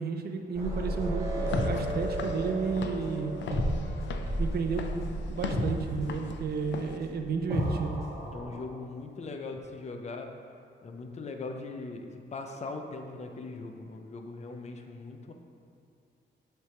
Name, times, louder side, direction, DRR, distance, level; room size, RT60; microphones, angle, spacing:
voice 1, 0.0-3.3 4.4-8.0, right 5 dB, 60° right, 4 dB, 0.6 m, -32 dB
sound 1, 0.5-8.6, equal, 20° right, 1.6 m, -33 dB
Walk footsteps / Siren, 1.4-7.0, left 6 dB, 80° left, 0.5 m, -40 dB
voice 2, 8.3-10.3 10.8-15.3, left 3 dB, 35° left, 4 dB, 0.6 m, -40 dB
7.8 x 3.4 x 5.6 m, 2.3 s
cardioid pair, 120°, 19 cm